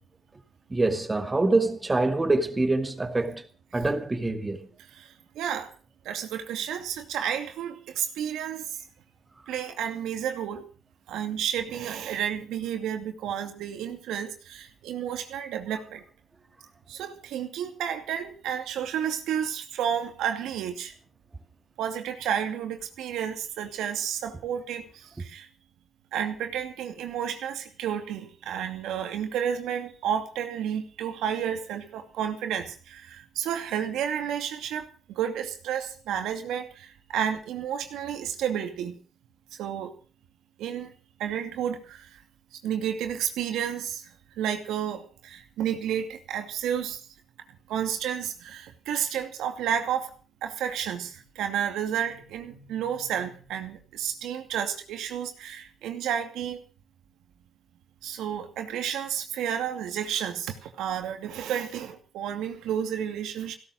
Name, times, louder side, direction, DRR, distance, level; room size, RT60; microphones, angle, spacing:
voice 1, 0.7-3.4 3.7-4.7, right 2 dB, 20° right, 2.4 m, -25 dB
voice 2, 5.0-5.7 6.0-8.8 9.5-10.6 11.1-16.0 16.9-20.9 21.8-25.5 26.1-39.0 39.5-39.9 40.6-40.9 41.2-42.2 42.6-44.1 44.4-47.0 47.7-50.1 50.4-56.6 58.0-63.6, right 9 dB, 85° right, 2.5 m, -31 dB
17.0 x 12.5 x 6.4 m
cardioid pair, 90°, 0 cm